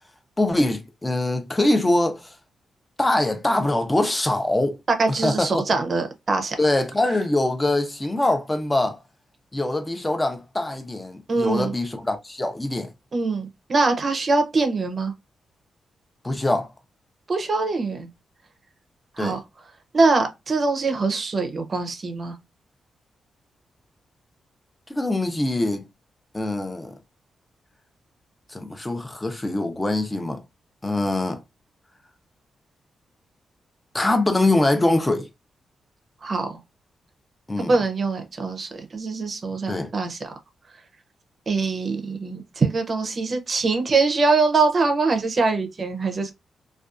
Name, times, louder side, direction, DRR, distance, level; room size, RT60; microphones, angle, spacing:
voice 1, 0.4-2.3 3.0-4.8 5.2-5.6 6.6-9.0 9.5-12.9 16.2-16.7 19.2-19.4 24.9-25.9 26.3-26.9 28.5-30.4 30.8-31.4 33.9-35.3 37.5-37.7 39.7-39.9, left 2 dB, 15° left, 0.6 m, -23 dB
voice 2, 4.9-6.6 11.3-11.7 13.1-15.1 17.3-18.1 19.2-19.4 19.9-22.4 36.2-36.6 37.6-40.3 41.5-46.3, right 3 dB, 45° right, 0.6 m, -23 dB
2.5 x 2.3 x 2.4 m
cardioid pair, 85°, 0 cm